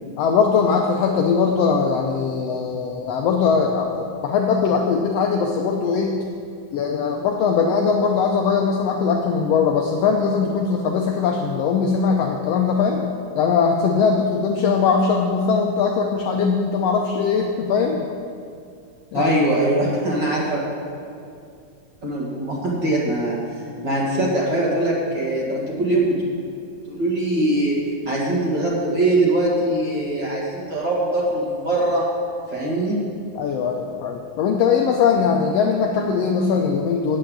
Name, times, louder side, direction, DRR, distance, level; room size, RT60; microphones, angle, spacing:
voice 1, 0.2-6.2 6.7-13.1 13.3-18.1 19.1-19.3 33.3-37.2, left 5 dB, 90° left, 2 dB, 1.4 m, -20 dB
voice 2, 19.1-20.6 22.0-23.4 23.8-26.3 26.9-27.8 28.1-32.1 32.5-33.0, right 1 dB, 45° right, -5 dB, 1.8 m, -22 dB
7.8 x 7.5 x 8.4 m, 2.4 s
omnidirectional pair, 3.6 m